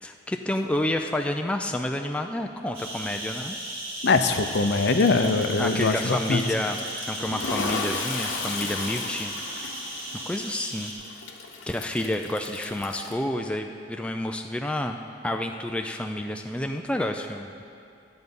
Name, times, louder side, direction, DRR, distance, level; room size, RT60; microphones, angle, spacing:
voice 1, 0.0-3.6 5.6-6.8 7.1-9.3 10.3-10.9 11.7-15.0 15.2-17.5, left 1 dB, 5° left, 4 dB, 0.3 m, -29 dB
sound 1, 2.7-10.9, right 1 dB, 30° right, 2.3 m, -35 dB
voice 2, 4.0-6.4, left 3 dB, 60° left, 8 dB, 0.6 m, -22 dB
Toilet flush, 4.3-13.1, left 4 dB, 75° left, 1.0 m, -36 dB
12.0 x 7.9 x 5.4 m, 2.5 s
head